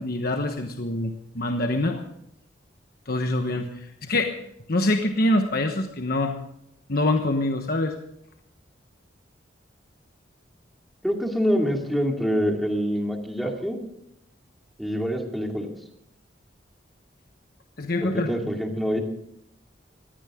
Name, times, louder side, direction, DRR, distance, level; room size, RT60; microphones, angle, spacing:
voice 1, 0.0-2.0 3.1-4.3 4.7-6.4 6.9-7.9 17.8-18.3, left 1 dB, 55° left, 5 dB, 1.2 m, -25 dB
voice 2, 11.0-13.8 14.8-15.7 18.0-19.0, equal, ahead, 2 dB, 2.5 m, -25 dB
20.5 x 15.5 x 3.8 m, 0.76 s
head